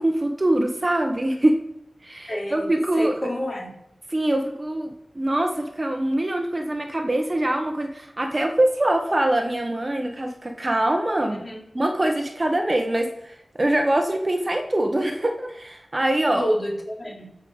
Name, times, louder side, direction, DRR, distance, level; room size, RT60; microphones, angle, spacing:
voice 1, 0.0-1.6 2.0-3.1 4.1-11.4 11.7-16.4, right 1 dB, 30° right, 4 dB, 1.3 m, -23 dB
voice 2, 2.3-2.7 2.9-3.7 11.3-11.6 16.3-17.3, equal, 35° left, -1 dB, 3.3 m, -28 dB
15.0 x 5.6 x 7.3 m, 0.79 s
wide cardioid pair, 80°, 0 cm